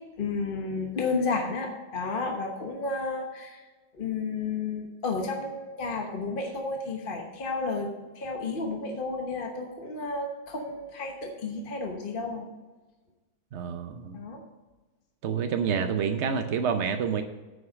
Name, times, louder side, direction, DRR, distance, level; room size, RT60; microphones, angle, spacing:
voice 1, 0.2-3.6 4.0-12.5 14.1-14.4, left 3 dB, 35° left, 2 dB, 0.9 m, -32 dB
voice 2, 13.5-14.2 15.2-17.2, right 6 dB, 85° right, 7 dB, 0.6 m, -28 dB
9.5 x 6.4 x 5.1 m, 1.2 s
omnidirectional pair, 2.0 m